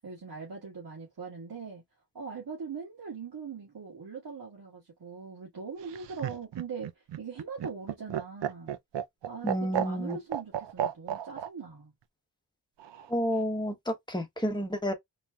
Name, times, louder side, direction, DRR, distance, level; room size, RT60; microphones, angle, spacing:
voice 1, 0.0-1.8 2.1-8.8 9.3-11.9, right 5 dB, 60° right, 1.9 m, -41 dB
Laughter, 5.8-11.5 12.8-13.4, right 10 dB, 75° right, 0.6 m, -33 dB
voice 2, 9.4-10.2 13.1-14.9, equal, 10° left, 1.1 m, -30 dB
4.1 x 3.2 x 2.3 m
wide cardioid pair, 90°, 43 cm